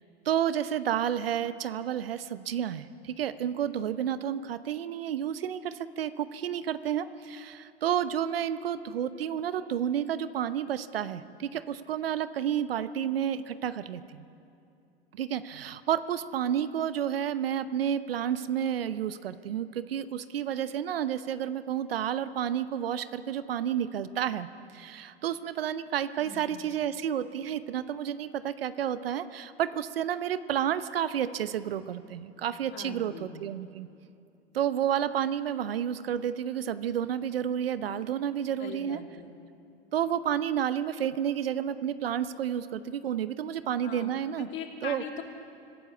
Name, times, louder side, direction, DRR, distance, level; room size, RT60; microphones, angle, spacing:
voice 1, 0.2-14.3 15.1-24.5 24.7-33.9 34.5-39.0 39.9-44.5 44.8-45.0, right 9 dB, 65° right, 14 dB, 0.9 m, -30 dB
voice 2, 26.2-26.6 32.7-33.3 38.6-39.3 43.8-45.2, left 7 dB, 40° left, 3 dB, 2.9 m, -41 dB
25.0 x 15.0 x 8.3 m, 2.6 s
figure-of-eight pair, 85°, 31 cm